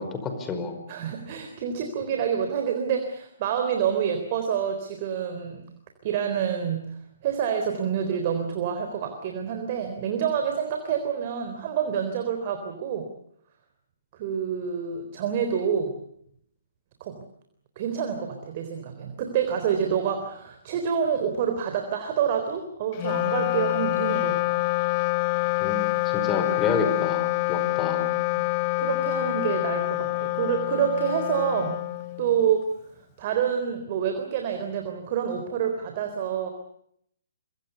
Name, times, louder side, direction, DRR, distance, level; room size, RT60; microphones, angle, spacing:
voice 1, 0.0-0.8 25.6-25.9 26.1-28.1, left 4 dB, 15° left, 7 dB, 5.2 m, -29 dB
voice 2, 0.9-5.6 6.0-7.0 7.2-13.1 14.1-15.9 17.0-17.2 17.8-24.6 27.6-27.7 28.3-28.4 28.8-31.8 32.2-32.7 33.2-36.5, right 8 dB, 40° right, 5 dB, 3.8 m, -27 dB
Wind instrument woodwind instrument, 22.9-32.5, left 22 dB, 35° left, 0.9 m, -26 dB
26.0 x 24.0 x 7.0 m, 0.70 s
figure-of-eight pair, 130°, 0 cm